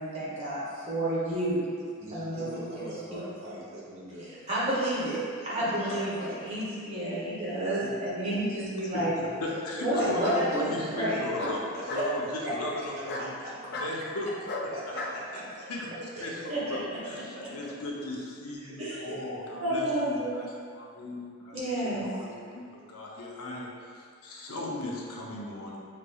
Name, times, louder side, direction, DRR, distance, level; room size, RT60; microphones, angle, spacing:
voice 1, 0.0-1.6 2.1-3.2 4.2-9.1 9.8-11.2 16.5-16.6 18.8-18.9 19.6-20.3 21.5-22.1, right 1 dB, 30° right, -9 dB, 1.4 m, -30 dB
voice 2, 2.0-4.3 5.6-6.6 6.9-7.0 8.2-8.4 9.1-10.2 11.7-11.8 12.9-13.7 14.7-15.5 16.2-16.7 17.3-17.7 18.6-19.2, right 1 dB, 65° right, -8 dB, 1.2 m, -42 dB
Bark, 8.0-8.7 10.2-10.4 11.4-12.1 13.0-13.3 13.7-13.9 14.5-15.2, left 2 dB, 50° left, 0.4 m, -35 dB
voice 3, 9.4-14.4 14.6-15.0 15.3-25.8, left 1 dB, 90° left, -3 dB, 0.7 m, -37 dB
6.5 x 3.4 x 2.3 m, 2.3 s
head